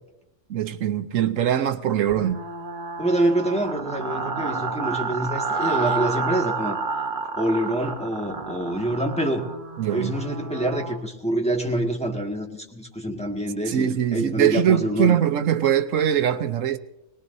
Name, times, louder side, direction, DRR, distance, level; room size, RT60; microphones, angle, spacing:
voice 1, 0.5-2.4 9.8-10.3 13.7-16.8, right 10 dB, 80° right, 1.1 m, -22 dB
sound 1, 2.1-11.0, right 4 dB, 40° right, 1.2 m, -30 dB
voice 2, 3.0-6.8 7.4-9.5 9.9-15.2, right 1 dB, 5° left, 1.8 m, -26 dB
22.5 x 19.5 x 2.7 m
omnidirectional pair, 1.3 m